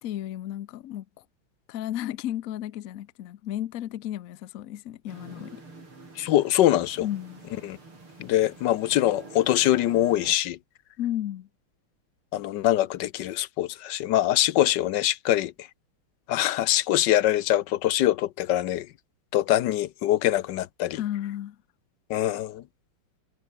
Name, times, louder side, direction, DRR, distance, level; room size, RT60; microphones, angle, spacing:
voice 1, 0.0-1.1 1.7-5.6 7.0-7.4 11.0-11.5 20.9-21.6, left 12 dB, 90° left, 0.7 m, -33 dB
sound 1, 5.1-10.4, right 3 dB, 75° right, 7.5 m, -46 dB
voice 2, 6.2-7.1 7.6-7.8 8.2-10.6 12.3-15.7 16.3-18.9 19.3-21.0 22.1-22.6, left 13 dB, 70° left, 1.2 m, -23 dB
omnidirectional pair, 2.4 m